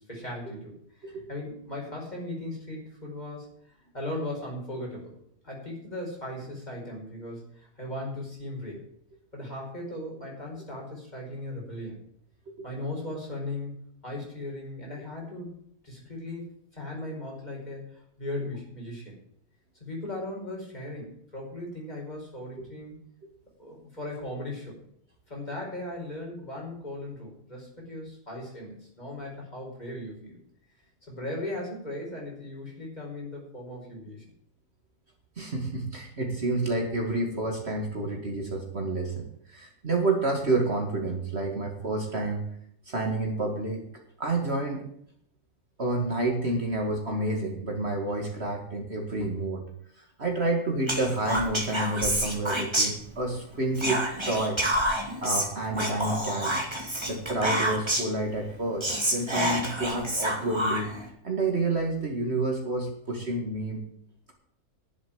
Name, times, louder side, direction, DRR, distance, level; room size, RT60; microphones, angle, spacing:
voice 1, 0.0-5.1 5.4-8.8 9.3-12.0 12.6-13.7 14.0-19.2 19.7-23.0 23.6-24.8 25.3-30.4 31.0-34.2, left 1 dB, 30° left, -2 dB, 5.3 m, -38 dB
voice 2, 35.4-42.5 42.9-43.8 44.2-44.8 45.8-49.6 50.2-54.6 55.2-56.5 57.1-60.9 61.2-63.9, right 2 dB, 45° right, 2 dB, 2.3 m, -29 dB
Whispering, 50.9-53.4 53.7-58.2 58.5-58.6 58.8-61.1, right 1 dB, 20° right, 2.5 m, -28 dB
11.0 x 7.6 x 8.8 m, 0.69 s
omnidirectional pair, 1.6 m